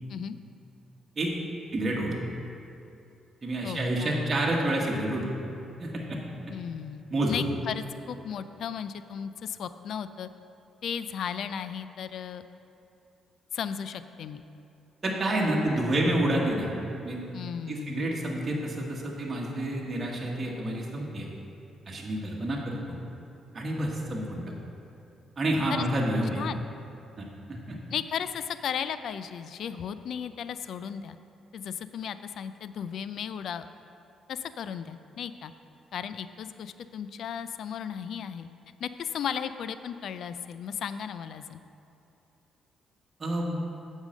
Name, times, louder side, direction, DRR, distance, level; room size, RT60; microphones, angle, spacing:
voice 1, 1.7-2.2 3.4-5.3 5.8-6.2 7.1-7.4 15.0-16.7 17.0-17.2 17.7-21.3 21.8-23.0 23.5-24.4 25.4-26.4 27.2-27.8 43.2-43.6, right 1 dB, 35° right, -3 dB, 1.5 m, -29 dB
voice 2, 3.6-4.4 6.5-7.0 7.3-10.3 10.8-12.4 13.5-14.4 17.3-18.1 25.7-25.9 26.4-26.6 27.9-31.2 31.5-33.7 34.3-35.5 35.9-38.5 38.8-41.6, left 8 dB, 70° left, 12 dB, 0.4 m, -35 dB
8.1 x 5.5 x 6.4 m, 2.7 s
cardioid pair, 90°, 0 cm